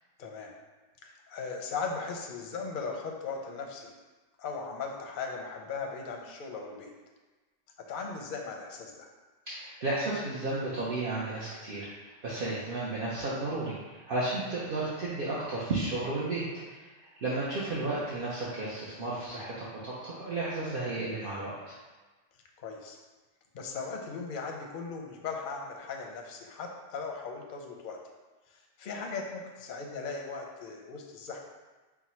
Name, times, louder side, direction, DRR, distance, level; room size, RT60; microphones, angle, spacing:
voice 1, 0.2-0.5 1.0-3.9 4.4-6.9 7.9-9.1 12.4-12.6 22.6-23.0 23.5-28.0 28.5-31.4, left 4 dB, 55° left, 1 dB, 0.7 m, -38 dB
voice 2, 9.5-16.9 17.2-21.7, right 2 dB, 55° right, -7 dB, 0.8 m, -33 dB
4.5 x 2.1 x 4.2 m, 1.3 s
omnidirectional pair, 1.2 m